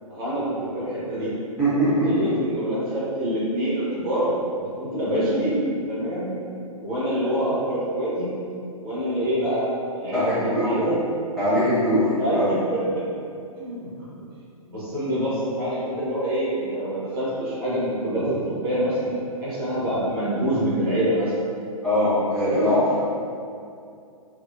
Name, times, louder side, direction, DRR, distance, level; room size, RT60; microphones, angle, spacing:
voice 1, 0.1-1.3 2.0-4.3 4.6-5.5 5.9-6.3 6.8-8.3 8.8-11.0 12.2-13.0 13.6-13.9 14.7-19.1 19.4-21.3, equal, 40° right, -9 dB, 1.0 m, -26 dB
voice 2, 1.6-2.1 10.1-10.7 11.4-12.4 21.8-22.8, equal, ahead, -17 dB, 0.9 m, -21 dB
2.6 x 2.2 x 2.5 m, 2.4 s
figure-of-eight pair, 120°, 19 cm